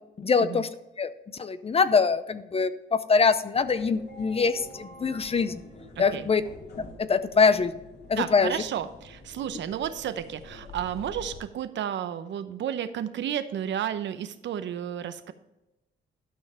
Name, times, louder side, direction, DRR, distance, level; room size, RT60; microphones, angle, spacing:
voice 1, 0.2-0.7 1.0-1.1 1.4-5.6 6.0-6.4 7.0-7.7 8.1-8.5, left 5 dB, 30° left, 13 dB, 0.6 m, -23 dB
sound 1, 3.5-11.4, left 2 dB, 55° left, 2.3 m, -46 dB
voice 2, 6.0-6.3 8.2-15.3, right 9 dB, 65° right, 11 dB, 0.8 m, -32 dB
12.5 x 5.7 x 4.4 m, 0.96 s
cardioid pair, 90°, 20 cm